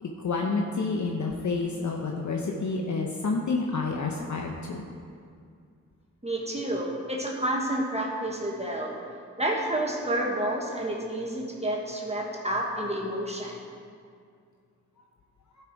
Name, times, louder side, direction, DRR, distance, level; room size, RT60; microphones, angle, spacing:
voice 1, 0.0-4.8, left 3 dB, 65° left, 1 dB, 0.8 m, -29 dB
voice 2, 6.2-8.9 9.4-13.6, right 1 dB, 20° right, -2 dB, 1.4 m, -29 dB
11.5 x 5.8 x 4.6 m, 2.3 s
cardioid pair, 45°, 32 cm